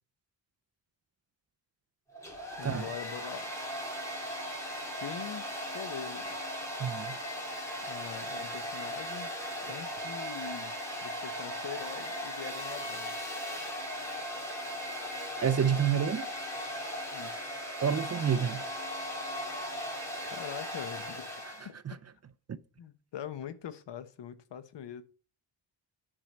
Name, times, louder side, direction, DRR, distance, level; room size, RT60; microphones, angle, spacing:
Domestic sounds home sounds, 2.1-21.7, equal, 5° left, 2.5 m, -38 dB
voice 1, 2.6-3.5 5.0-6.4 7.9-9.3 9.6-10.7 11.0-13.1 17.1-17.5 20.3-21.3 21.6-21.8 22.8-25.0, left 9 dB, 70° left, 1.0 m, -43 dB
voice 2, 6.8-7.2 15.4-16.3 17.8-18.6 21.9-22.0 22.5-22.6, right 8 dB, 35° right, 0.5 m, -28 dB
10.0 x 4.6 x 6.6 m
wide cardioid pair, 175°, 43 cm